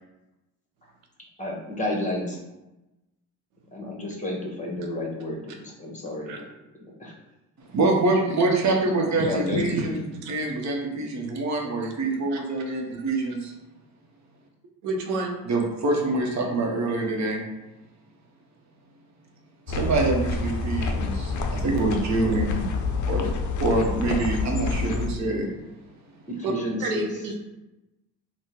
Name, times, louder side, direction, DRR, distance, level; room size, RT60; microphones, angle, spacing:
voice 1, 1.4-2.4 3.7-6.4 7.0-7.1 8.9-10.0 26.4-27.0, left 1 dB, 15° left, -1 dB, 1.0 m, -31 dB
voice 2, 7.7-10.0 10.3-13.5 15.5-17.4 19.7-22.6 23.0-25.5, right 2 dB, 40° right, 1 dB, 0.9 m, -25 dB
voice 3, 9.2-9.9 10.1-10.3 12.3-12.4 14.8-15.4 26.4-26.5 26.8-27.3, right 2 dB, 90° right, 2 dB, 0.7 m, -30 dB
sound 1, 19.7-25.1, left 3 dB, 45° left, 0.5 m, -28 dB
3.5 x 2.2 x 2.9 m, 0.99 s
supercardioid pair, 75°, 42 cm